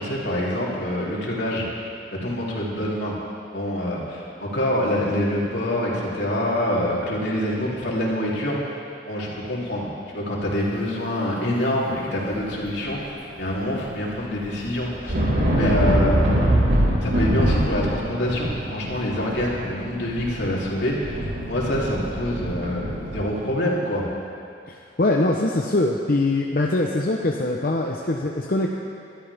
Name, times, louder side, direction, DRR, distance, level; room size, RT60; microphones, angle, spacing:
voice 1, 0.0-1.7 2.2-3.2 3.5-8.8 9.0-9.9 10.1-15.2 15.5-16.2 17.0-24.1, left 1 dB, 80° left, -5 dB, 3.3 m, -26 dB
sound 1, 12.4-13.4 13.7-23.2, equal, 85° right, 4.1 m, -24 dB
voice 2, 24.6-28.7, left 2 dB, 55° left, -1 dB, 0.9 m, -23 dB
22.0 x 12.5 x 3.6 m, 2.4 s
head